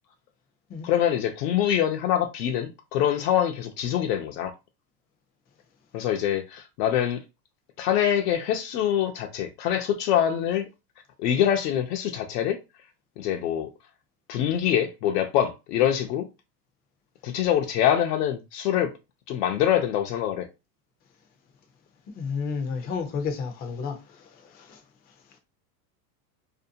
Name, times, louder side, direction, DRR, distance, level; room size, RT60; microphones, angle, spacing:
voice 1, 0.8-4.5 5.9-7.2 7.8-10.7 11.2-12.6 13.2-13.7 14.3-16.3 17.2-18.9 19.3-20.5, left 10 dB, 75° left, 0.6 m, -24 dB
voice 2, 22.2-24.0, left 5 dB, 20° left, 0.4 m, -30 dB
2.6 x 2.1 x 2.6 m
supercardioid pair, 120°, 49 cm